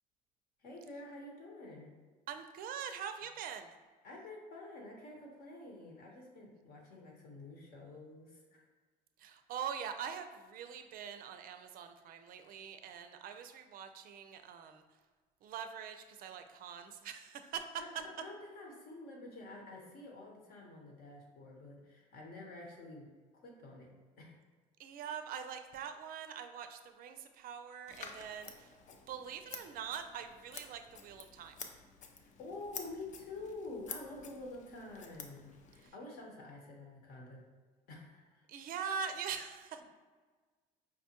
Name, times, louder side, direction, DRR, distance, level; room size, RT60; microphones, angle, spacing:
voice 1, 0.6-1.9 4.0-8.7 17.8-17.9 18.2-24.3 32.4-37.4 37.9-38.4, left 2 dB, 60° left, -1 dB, 1.0 m, -49 dB
voice 2, 2.3-3.7 9.2-14.8 15.4-17.8 24.8-28.7 29.1-31.6 35.8-35.9 38.5-39.8, right 7 dB, 55° right, 8 dB, 0.4 m, -43 dB
Scissors, 27.9-35.9, left 6 dB, 45° left, 0.5 m, -50 dB
4.8 x 2.2 x 2.9 m, 1.4 s
supercardioid pair, 90°, 18 cm